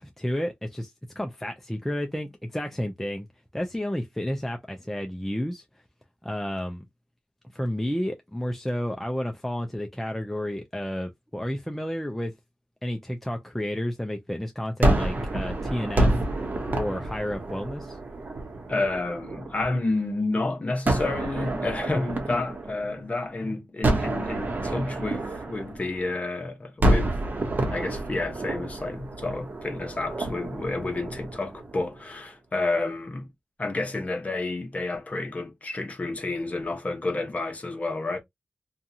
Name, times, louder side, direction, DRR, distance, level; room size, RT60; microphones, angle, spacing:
voice 1, 0.0-3.3 3.5-5.6 6.2-6.9 7.5-12.3 12.8-16.2 16.7-18.0, equal, 5° left, 0.4 m, -31 dB
Gunshot gunfire, 14.8-19.9 20.8-23.3 23.8-26.3 26.8-32.0, right 1 dB, 50° right, 0.9 m, -28 dB
voice 2, 18.7-27.2 27.7-33.3 33.6-38.2, left 2 dB, 35° left, 0.9 m, -30 dB
2.7 x 2.3 x 2.6 m
wide cardioid pair, 105°, 4 cm